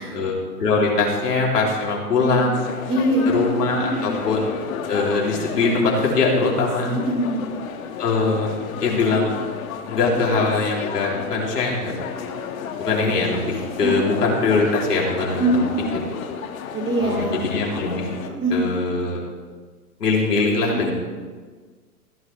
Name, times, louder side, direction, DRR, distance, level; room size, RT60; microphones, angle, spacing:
voice 1, 0.1-2.5 3.3-4.5 4.9-6.9 8.0-9.3 9.9-11.9 12.8-15.4 15.8-15.9 17.0-18.1 18.5-19.2 20.0-20.9, left 3 dB, 80° left, -3 dB, 3.5 m, -22 dB
sound 1, 2.5-18.3, left 7 dB, 60° left, 1.5 m, -32 dB
voice 2, 2.9-3.4 3.7-4.1 6.9-7.4 13.8-13.9 15.4-15.9 16.7-17.3 18.4-18.7 20.7-20.8, right 1 dB, 25° right, -2 dB, 4.7 m, -23 dB
17.0 x 11.0 x 3.4 m, 1.5 s
hypercardioid pair, 115°, 47 cm